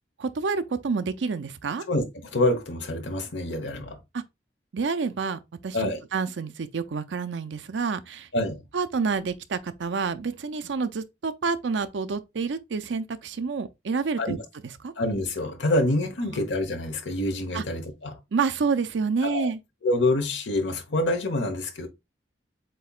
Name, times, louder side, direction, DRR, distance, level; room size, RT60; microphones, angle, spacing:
voice 1, 0.2-1.9 4.1-4.2 4.7-8.3 8.7-14.4 14.8-14.9 17.5-17.6 18.3-19.6, right 5 dB, 85° right, 0.5 m, -28 dB
voice 2, 1.9-4.0 5.7-6.0 8.3-8.6 14.2-14.4 15.0-18.2 19.2-19.5 19.8-21.9, left 1 dB, 90° left, 1.1 m, -26 dB
7.6 x 2.9 x 2.3 m
head